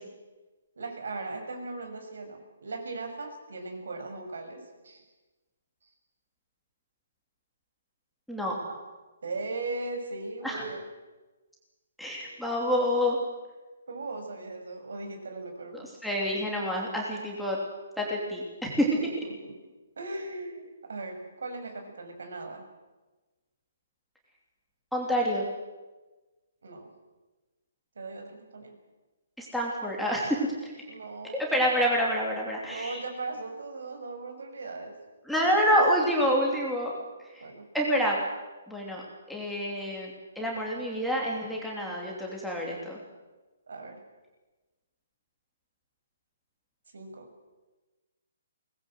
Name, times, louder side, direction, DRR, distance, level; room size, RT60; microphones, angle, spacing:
voice 1, 0.8-5.0 8.6-8.8 9.2-10.9 12.2-12.4 13.9-15.9 19.0-22.6 26.6-26.9 27.9-28.8 30.9-31.6 32.6-35.0 37.4-37.7 43.7-44.0 46.9-47.3, right 3 dB, 75° right, 5 dB, 6.6 m, -38 dB
voice 2, 12.0-13.2 15.7-17.6 18.0-18.9 24.9-25.4 29.4-30.4 30.6-30.7 31.5-33.0 35.3-36.9 37.3-37.4 37.7-38.2 38.7-39.0 39.3-43.0, equal, ahead, -4 dB, 3.0 m, -27 dB
23.0 x 19.5 x 7.9 m, 1.2 s
hypercardioid pair, 175°, 0 cm